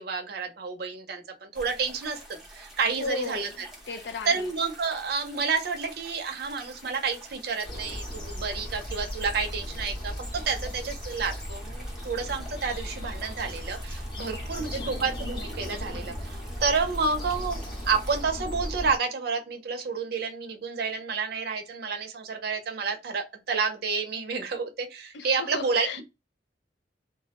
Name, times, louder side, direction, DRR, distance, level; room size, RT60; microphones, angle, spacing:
voice 1, 0.0-3.5 4.3-17.6 17.9-26.0, right 5 dB, 60° right, 0.5 m, -30 dB
sound 1, 1.5-18.2, equal, ahead, 0.7 m, -48 dB
voice 2, 3.0-4.5 14.7-15.0 25.1-26.0, left 4 dB, 75° left, 0.5 m, -36 dB
sound 2, 7.6-19.0, equal, 25° left, 0.8 m, -36 dB
2.3 x 2.0 x 2.8 m
head